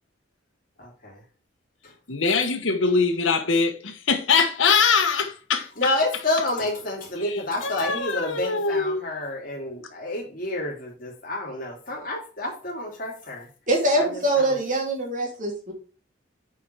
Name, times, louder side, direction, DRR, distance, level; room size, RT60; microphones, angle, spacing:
voice 1, 0.8-1.2 1.8-1.9 5.8-13.5 14.0-14.6, left 2 dB, 45° left, 3.1 m, -29 dB
voice 2, 2.1-5.7 7.2-9.0, left 5 dB, 85° left, 1.2 m, -23 dB
voice 3, 13.7-15.7, right 1 dB, 40° right, 2.5 m, -23 dB
7.1 x 5.0 x 4.6 m
head